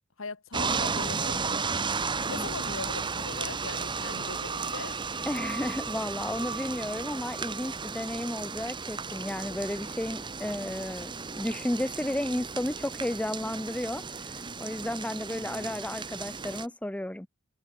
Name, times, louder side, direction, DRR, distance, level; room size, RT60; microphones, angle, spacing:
voice 1, 0.2-1.7 2.3-5.0, left 3 dB, 65° left, 1.8 m, -40 dB
sound 1, 0.5-16.7, right 5 dB, 20° right, 0.9 m, -34 dB
voice 2, 5.3-14.0 14.6-17.3, left 1 dB, 5° left, 0.5 m, -33 dB
head